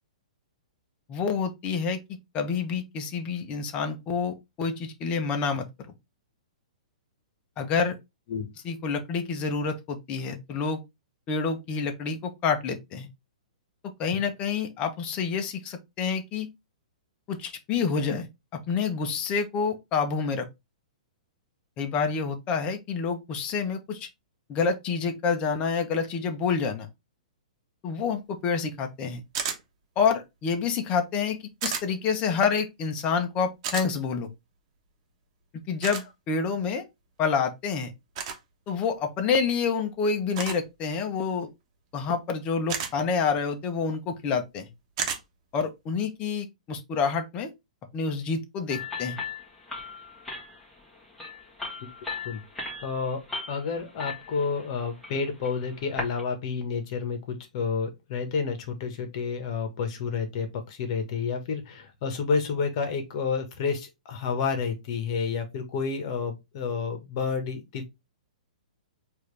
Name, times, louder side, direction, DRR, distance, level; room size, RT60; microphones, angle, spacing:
voice 1, 1.1-2.0 2.3-5.9 7.6-8.0 8.6-10.8 11.3-13.1 14.0-16.5 17.3-20.5 21.8-24.1 24.5-26.9 27.8-29.2 30.0-34.3 35.7-36.8 37.2-37.9 38.7-41.5 41.9-44.7 45.5-47.5 47.9-49.2, left 5 dB, 30° left, 0.9 m, -28 dB
sound 1, 29.3-29.6 31.6-31.8 33.6-33.9 35.8-36.0 38.1-38.4 40.4-40.6 42.7-42.9 45.0-45.2, right 7 dB, 45° right, 1.1 m, -31 dB
sound 2, 48.7-56.2, left 4 dB, 5° left, 1.6 m, -38 dB
voice 2, 52.8-53.2 53.5-67.9, left 5 dB, 50° left, 1.3 m, -30 dB
4.7 x 2.8 x 3.3 m
hypercardioid pair, 130°, 4 cm